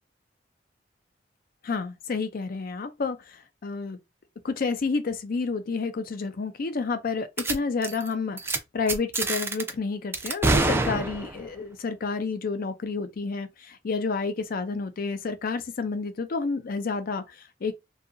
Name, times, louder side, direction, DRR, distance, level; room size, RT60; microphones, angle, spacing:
voice 1, 1.6-4.0 4.4-17.7, left 4 dB, 50° left, 0.5 m, -30 dB
sound 1, 7.4-7.6 7.8-8.1 8.4-8.6 8.9-9.7 10.1-11.5, right 2 dB, 15° right, 0.4 m, -26 dB
2.7 x 2.4 x 2.5 m
head